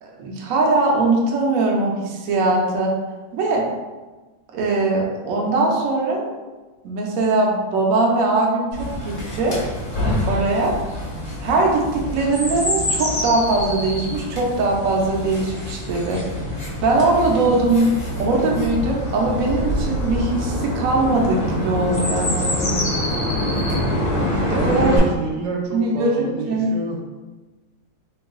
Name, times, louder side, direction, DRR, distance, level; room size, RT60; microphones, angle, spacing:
voice 1, 0.0-2.9 3.3-3.7 4.5-6.3 6.8-9.6 10.3-10.7 11.4-16.2 16.8-17.9 18.2-22.8 24.6-24.9 25.7-26.7, right 2 dB, 65° right, -1 dB, 0.9 m, -21 dB
Chirp tweet, 8.7-25.0, left 1 dB, 40° left, 0.7 m, -25 dB
voice 2, 24.5-27.0, right 3 dB, 85° right, 0 dB, 1.3 m, -28 dB
3.0 x 2.3 x 3.6 m, 1.2 s
omnidirectional pair, 1.9 m